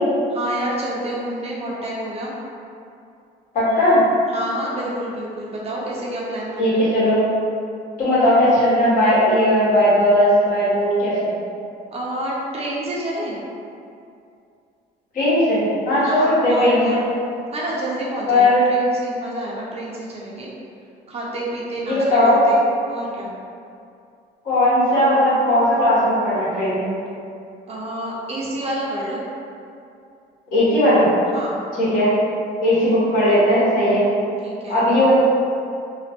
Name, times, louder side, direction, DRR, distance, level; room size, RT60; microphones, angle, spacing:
voice 1, 0.3-2.3 4.3-6.8 11.9-13.4 16.0-17.0 17.5-20.5 21.1-22.6 22.9-23.4 27.7-29.3 31.3-31.6 34.4-34.9, right 1 dB, 35° right, -5 dB, 0.6 m, -28 dB
voice 2, 3.5-4.0 6.6-7.2 8.0-11.3 15.1-17.0 18.3-18.7 21.9-22.4 24.4-26.9 30.5-31.1 31.8-32.1 32.6-34.0 34.7-35.2, left 1 dB, 55° left, -10 dB, 1.5 m, -17 dB
2.9 x 2.4 x 2.9 m, 2.5 s
cardioid pair, 110°, 17 cm